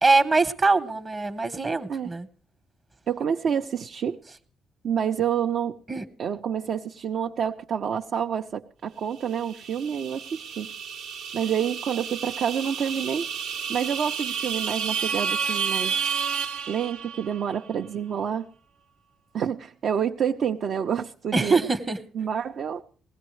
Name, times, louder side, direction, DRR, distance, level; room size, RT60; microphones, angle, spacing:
voice 1, 0.0-2.3 5.9-6.0 21.3-22.0, right 3 dB, 35° right, 0.9 m, -23 dB
voice 2, 3.1-4.2 4.8-5.8 6.2-10.7 11.3-13.3 13.7-16.0 16.7-18.5 19.3-21.6 22.1-22.8, right 8 dB, 65° right, 0.6 m, -28 dB
sound 1, 9.4-17.4, right 6 dB, 90° right, 0.9 m, -31 dB
20.0 x 16.0 x 3.1 m
cardioid pair, 90°, 0 cm